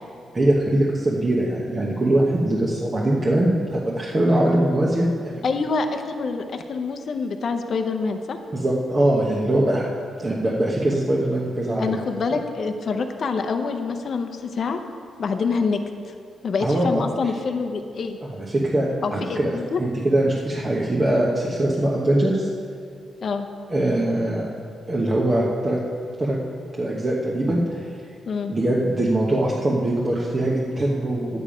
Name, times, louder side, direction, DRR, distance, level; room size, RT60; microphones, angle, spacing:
voice 1, 0.3-5.4 8.5-9.8 10.2-12.0 16.6-17.0 18.4-19.5 19.8-22.5 23.7-24.5 24.9-25.8 26.2-26.4 26.8-27.9 28.5-31.4, right 1 dB, 25° right, -4 dB, 1.0 m, -22 dB
voice 2, 5.4-8.4 11.8-14.8 15.2-15.8 16.1-16.2 16.4-18.2 19.0-19.8 23.2-23.5 28.3-28.5, left 4 dB, 45° left, 6 dB, 0.7 m, -26 dB
11.0 x 8.7 x 5.0 m, 2.3 s
wide cardioid pair, 155°, 0 cm